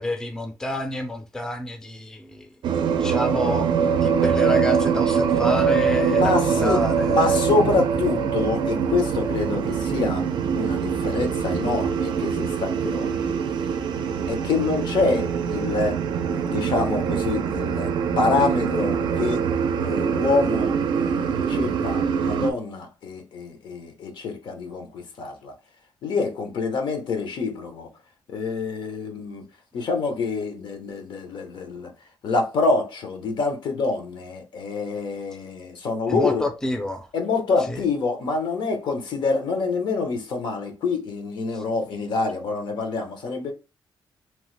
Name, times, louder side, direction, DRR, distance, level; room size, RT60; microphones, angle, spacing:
voice 1, 0.0-2.5 3.0-3.7 4.0-7.3 36.1-37.1 37.7-37.8 41.5-41.6, left 1 dB, 10° left, 0.4 m, -29 dB
sound 1, 2.6-22.5, right 6 dB, 75° right, 0.4 m, -23 dB
voice 2, 6.0-10.2 10.5-13.4 14.3-16.0 16.3-19.4 19.8-25.5 26.0-27.9 28.3-29.4 29.7-31.9 32.2-36.4 37.1-43.5, left 4 dB, 70° left, 0.8 m, -26 dB
3.0 x 2.0 x 3.1 m
wide cardioid pair, 145°, 8 cm